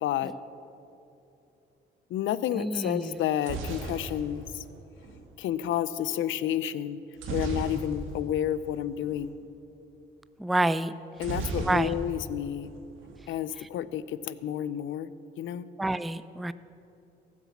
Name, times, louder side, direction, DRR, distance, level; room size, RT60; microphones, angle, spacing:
voice 1, 0.0-0.3 2.1-4.6 5.4-7.0 7.3-9.3 11.2-12.7 13.3-15.1 15.4-15.7, left 11 dB, 75° left, 16 dB, 0.5 m, -30 dB
voice 2, 2.5-3.2 10.4-10.9 11.7-12.0 13.6-13.7 15.8-16.5, right 1 dB, ahead, 15 dB, 0.3 m, -28 dB
sound 1, 3.1-5.2 7.2-8.3 8.6-8.8 9.0-9.3 11.2-12.3 12.6-13.3, right 3 dB, 85° right, 1.7 m, -35 dB
15.0 x 7.3 x 7.2 m, 2.8 s
cardioid pair, 90°, 20 cm